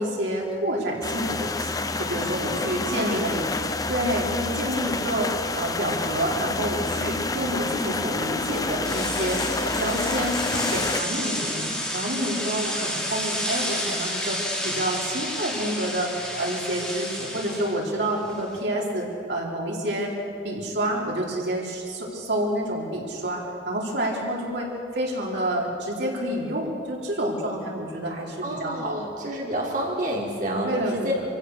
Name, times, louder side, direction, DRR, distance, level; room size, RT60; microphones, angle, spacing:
voice 1, 0.0-1.7 2.0-3.5 3.9-14.4 14.6-16.1 16.4-20.1 20.4-29.1 30.6-31.2, right 1 dB, 75° right, -3 dB, 4.4 m, -28 dB
sound 1, 1.0-11.0, left 3 dB, 20° left, 0.7 m, -28 dB
voice 2, 2.3-2.7 3.3-3.4 28.4-31.1, right 1 dB, 50° right, -3 dB, 4.1 m, -29 dB
sound 2, 8.8-18.6, left 1 dB, 5° left, 4.0 m, -31 dB
25.0 x 15.5 x 6.6 m, 2.5 s
head